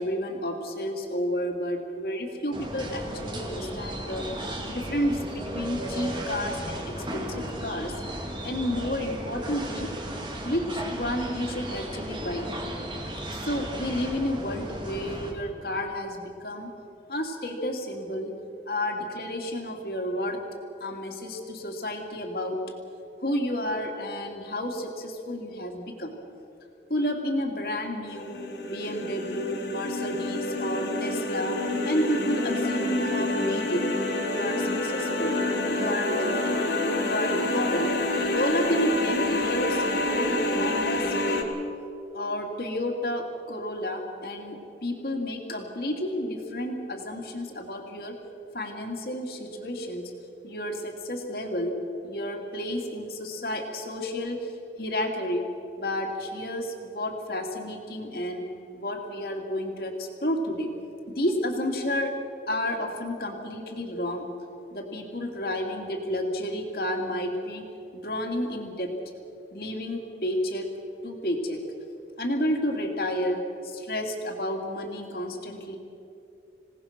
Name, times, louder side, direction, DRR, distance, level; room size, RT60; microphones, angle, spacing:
voice 1, 0.0-4.3 4.7-8.0 8.4-9.9 10.4-12.5 13.3-16.7 17.1-18.4 18.7-20.4 20.8-22.6 23.2-26.1 26.9-28.4 28.7-33.8 34.3-35.3 35.6-36.6 37.0-37.9 38.2-41.4 42.1-48.2 48.5-50.1 50.4-51.7 52.0-54.5 54.8-55.4 55.8-58.5 58.7-60.7 61.1-62.2 62.5-64.3 64.7-67.6 67.9-68.9 69.5-70.7 71.0-71.6 72.2-75.8, left 1 dB, 55° left, 2 dB, 2.7 m, -31 dB
sound 1, 2.5-15.3, right 1 dB, 25° right, 2.4 m, -35 dB
sound 2, 28.1-41.4, left 2 dB, 85° left, 3.1 m, -28 dB
26.5 x 18.0 x 6.0 m, 2.7 s
head